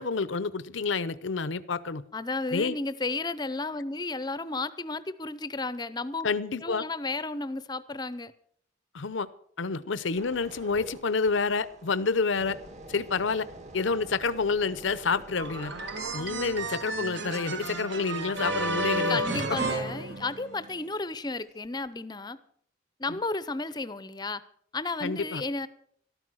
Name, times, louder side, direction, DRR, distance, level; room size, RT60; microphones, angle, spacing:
voice 1, 0.0-2.0 2.5-2.8 6.2-6.8 8.9-9.3 9.6-12.6 12.9-13.5 13.7-15.7 16.1-19.2 19.5-19.6 23.1-23.2 25.0-25.4, left 4 dB, 75° left, 16 dB, 0.7 m, -28 dB
voice 2, 2.1-6.3 6.6-8.3 19.1-22.4 23.0-24.4 24.7-25.7, left 3 dB, 20° left, 15 dB, 0.7 m, -33 dB
sound 1, 10.2-21.1 21.6-21.9, right 1 dB, 35° right, 1.6 m, -49 dB
sound 2, 15.4-20.8, right 1 dB, 65° right, 1.8 m, -32 dB
13.5 x 13.0 x 6.3 m, 0.63 s
head